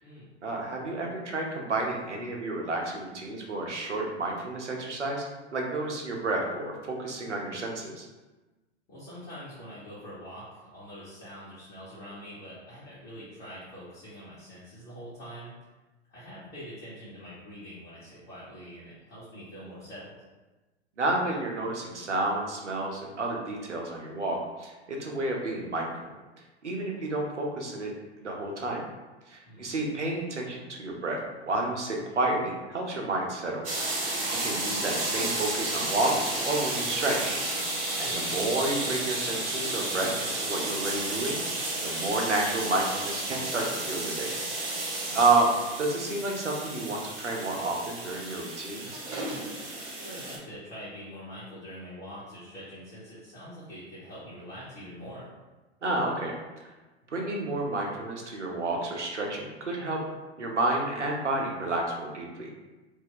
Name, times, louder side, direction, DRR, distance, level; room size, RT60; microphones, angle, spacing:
voice 1, 0.4-8.1 21.0-26.1 26.6-27.9 28.2-28.9 29.3-33.6 34.4-37.4 38.0-41.4 41.8-44.3 45.1-45.5 45.8-49.0 55.8-56.3 57.1-60.0 60.4-62.5, right 2 dB, 80° right, 0 dB, 0.8 m, -30 dB
voice 2, 8.9-15.5 16.1-20.2 29.4-29.8 38.0-38.4 45.1-45.3 49.9-55.3, equal, 30° left, -11 dB, 1.0 m, -44 dB
sound 1, 33.6-50.4, right 2 dB, 55° right, 1.2 m, -32 dB
2.7 x 2.1 x 3.8 m, 1.2 s
figure-of-eight pair, 100°, 35 cm